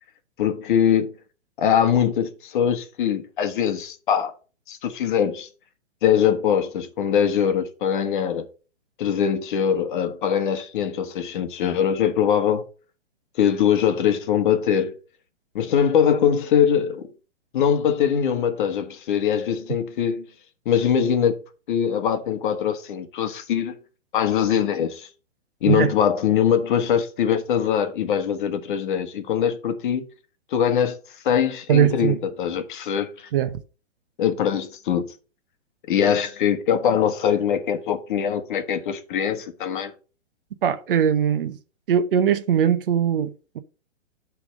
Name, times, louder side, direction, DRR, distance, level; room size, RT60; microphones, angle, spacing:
voice 1, 0.4-1.1 1.6-4.3 4.7-5.5 6.0-8.5 9.0-12.6 13.4-14.9 15.5-17.1 17.5-20.2 20.6-21.4 21.7-23.8 24.1-25.1 25.6-30.0 30.5-31.0 31.2-33.3 34.2-35.1 35.9-39.9, left 8 dB, 40° left, 1.3 m, -22 dB
voice 2, 31.7-32.2 33.3-33.6 40.6-41.5 41.9-43.6, right 9 dB, 45° right, 0.8 m, -20 dB
9.8 x 3.5 x 6.3 m
hypercardioid pair, 155°, 37 cm